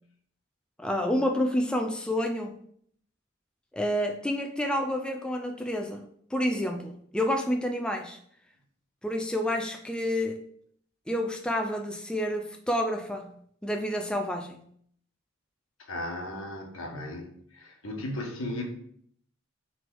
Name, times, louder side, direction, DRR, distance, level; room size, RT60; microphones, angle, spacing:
voice 1, 0.8-2.6 3.7-6.1 6.3-8.2 9.0-10.4 11.1-13.3 13.6-14.6, left 1 dB, 5° left, 4 dB, 0.4 m, -29 dB
voice 2, 15.8-18.6, left 1 dB, 80° left, 1 dB, 1.4 m, -36 dB
4.7 x 4.3 x 4.7 m, 0.64 s
head